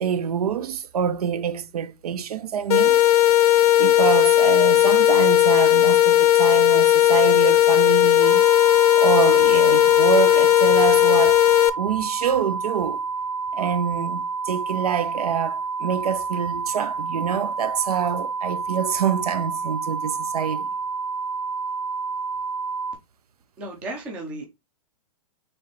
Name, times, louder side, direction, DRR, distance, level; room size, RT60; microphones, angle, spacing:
voice 1, 0.0-3.0 3.8-11.4 11.8-13.0 13.5-20.7, right 8 dB, 90° right, 0.6 m, -26 dB
sound 1, 2.7-11.7, left 12 dB, 85° left, 0.6 m, -16 dB
sound 2, 8.2-23.0, right 4 dB, 40° right, 1.2 m, -29 dB
voice 2, 23.6-24.5, right 2 dB, 5° right, 0.4 m, -34 dB
4.2 x 3.2 x 3.1 m
hypercardioid pair, 180°, 19 cm